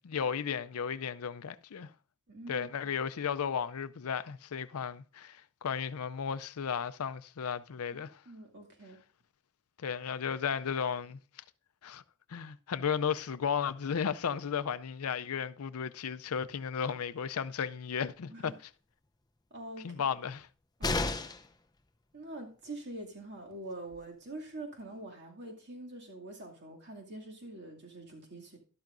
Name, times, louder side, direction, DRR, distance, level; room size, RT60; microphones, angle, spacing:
voice 1, 0.0-1.9 2.5-8.2 9.8-11.2 11.8-12.0 12.3-18.5 19.8-20.5, left 7 dB, 90° left, 0.5 m, -34 dB
voice 2, 2.3-2.9 7.9-8.0 8.3-9.0 18.3-18.6 19.5-20.2 20.8-21.1 22.1-28.6, right 2 dB, 55° right, 2.4 m, -45 dB
sound 1, 20.8-21.6 23.5-23.6 23.9-24.0, left 3 dB, 20° left, 0.6 m, -32 dB
12.0 x 12.0 x 2.6 m
head